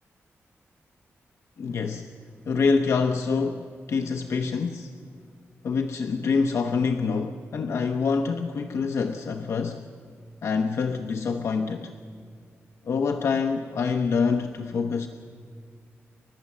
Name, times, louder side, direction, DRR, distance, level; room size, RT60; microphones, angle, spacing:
voice 1, 1.6-2.1 2.5-4.9 5.6-9.9 10.4-11.9 12.8-15.1, left 5 dB, 70° left, 5 dB, 0.9 m, -26 dB
29.5 x 12.5 x 7.4 m, 2.1 s
wide cardioid pair, 150°, 5 cm